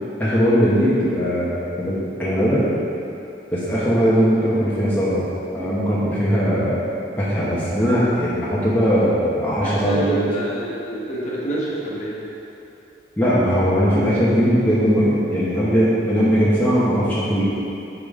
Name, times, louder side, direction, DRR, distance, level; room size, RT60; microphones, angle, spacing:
voice 1, 0.2-2.7 3.5-5.3 5.5-6.8 7.2-10.2 13.2-17.4, equal, 10° left, -10 dB, 1.0 m, -19 dB
voice 2, 9.6-12.2, right 2 dB, 40° left, -7 dB, 1.3 m, -27 dB
7.5 x 5.0 x 3.7 m, 2.8 s
head